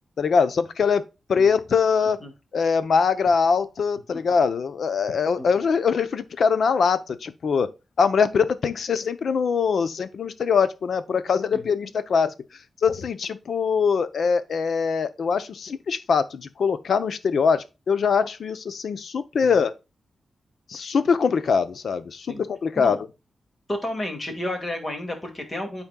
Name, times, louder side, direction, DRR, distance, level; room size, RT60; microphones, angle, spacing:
voice 1, 0.2-1.0 1.3-2.2 2.5-7.7 8.0-12.3 12.8-19.7 20.7-23.1, left 5 dB, 65° left, 0.7 m, -22 dB
voice 2, 23.7-25.8, left 1 dB, 25° left, 2.2 m, -31 dB
12.0 x 4.4 x 2.3 m
wide cardioid pair, 120°, 0 cm